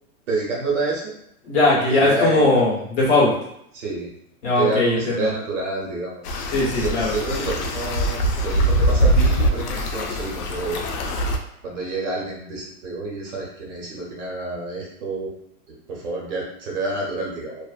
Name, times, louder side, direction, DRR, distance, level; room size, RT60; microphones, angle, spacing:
voice 1, 0.3-1.1 1.9-2.6 3.7-4.1 4.5-6.2 6.6-10.8 11.6-15.3 15.7-17.6, right 3 dB, 55° right, -3 dB, 1.0 m, -28 dB
voice 2, 1.5-3.3 4.4-5.0 6.5-7.1, left 2 dB, 45° left, -5 dB, 1.2 m, -19 dB
sound 1, 6.2-11.4, right 1 dB, 90° left, 0.6 m, -22 dB
2.4 x 2.4 x 2.4 m, 0.74 s
hypercardioid pair, 160°, 45 cm